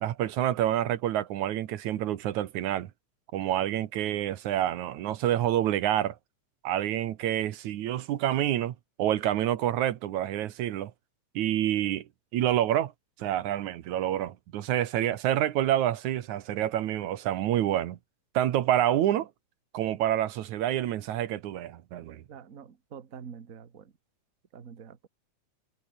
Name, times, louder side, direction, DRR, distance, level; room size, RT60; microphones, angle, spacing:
voice 1, 0.0-2.9 3.3-6.2 6.6-10.9 11.4-12.1 12.3-12.9 13.2-18.0 18.3-19.3 19.7-22.2, right 12 dB, 75° right, 2.5 m, -28 dB
voice 2, 22.3-23.9 24.5-25.1, right 7 dB, 35° right, 1.4 m, -46 dB
omnidirectional pair, 3.5 m